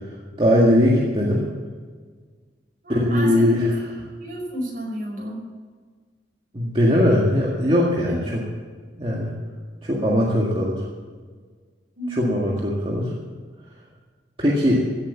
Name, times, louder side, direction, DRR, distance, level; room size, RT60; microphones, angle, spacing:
voice 1, 0.4-1.4 2.9-3.7 6.5-8.4 9.0-9.3 9.8-10.8 12.1-13.1 14.4-14.8, left 1 dB, 30° right, -4 dB, 2.0 m, -20 dB
voice 2, 2.8-3.5 4.2-5.4 8.1-8.3 12.0-12.4 14.8-15.0, right 1 dB, 50° right, -1 dB, 5.0 m, -31 dB
16.0 x 8.4 x 7.3 m, 1.5 s
head